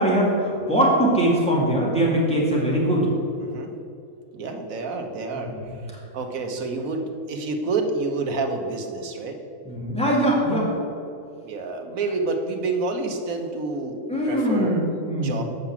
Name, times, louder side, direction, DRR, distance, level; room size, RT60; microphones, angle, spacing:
voice 1, 0.0-3.1 5.5-5.6 9.6-10.7 14.1-15.4, right 1 dB, 5° left, -5 dB, 2.3 m, -21 dB
voice 2, 3.4-3.7 4.3-5.5 6.1-9.4 11.4-14.9 15.2-15.4, right 3 dB, 75° right, 4 dB, 1.4 m, -28 dB
8.0 x 5.9 x 7.3 m, 2.5 s
omnidirectional pair, 1.5 m